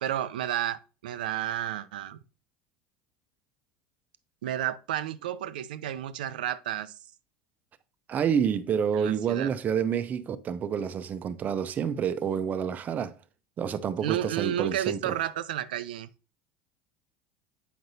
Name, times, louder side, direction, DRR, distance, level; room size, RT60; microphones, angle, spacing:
voice 1, 0.0-2.2 4.4-7.0 8.9-9.5 14.0-16.1, right 11 dB, 85° right, 0.4 m, -31 dB
voice 2, 8.1-13.2 13.6-15.2, right 8 dB, 35° right, 0.6 m, -28 dB
7.8 x 5.1 x 2.7 m
hypercardioid pair, 95°, 5 cm